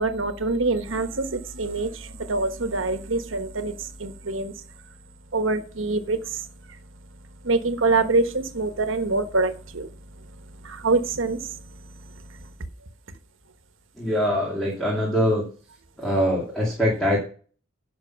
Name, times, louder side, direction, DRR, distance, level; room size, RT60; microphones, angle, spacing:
voice 1, 0.0-4.5 5.3-6.4 7.4-9.9 10.6-11.6, right 3 dB, 70° right, 9 dB, 1.3 m, -25 dB
voice 2, 14.0-15.4 16.0-17.2, equal, ahead, -4 dB, 2.4 m, -23 dB
10.5 x 6.0 x 5.9 m, 0.40 s
head